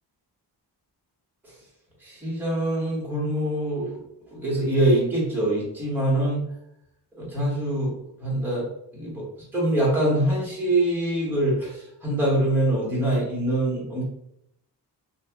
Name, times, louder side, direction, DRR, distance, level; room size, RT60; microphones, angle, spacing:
voice 1, 2.0-4.0 4.3-6.4 7.2-7.9 8.2-8.6 8.9-9.2 9.5-14.0, right 1 dB, 5° right, -5 dB, 1.1 m, -24 dB
2.8 x 2.4 x 3.4 m, 0.76 s
wide cardioid pair, 165°, 39 cm